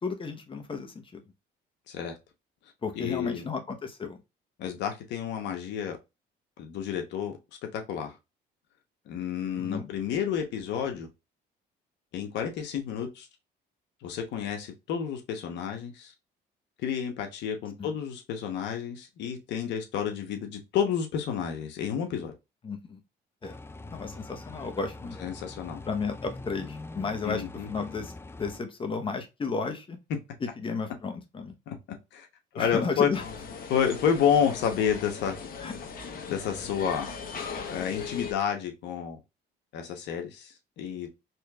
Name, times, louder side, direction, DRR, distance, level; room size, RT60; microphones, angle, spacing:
voice 1, 0.0-1.2 2.8-4.2 9.6-9.9 17.8-17.9 22.6-23.0 23.4-23.6 23.9-25.2 25.9-30.0 30.4-31.5 32.5-33.2 35.6-35.7, left 4 dB, 30° left, 0.9 m, -33 dB
voice 2, 3.0-3.4 4.6-6.0 6.6-7.3 7.7-8.1 9.1-11.1 12.1-13.3 14.0-16.1 16.8-22.3 25.2-25.8 27.2-27.7 31.7-31.8 32.1-32.3 32.5-33.1 33.7-35.4 36.3-37.1 37.7-39.2 39.7-41.1, left 8 dB, 75° left, 1.0 m, -30 dB
sound 1, 23.4-28.6, left 2 dB, 15° left, 0.4 m, -43 dB
sound 2, 33.1-38.3, left 6 dB, 55° left, 1.0 m, -39 dB
4.3 x 3.2 x 2.3 m
cardioid pair, 95°, 18 cm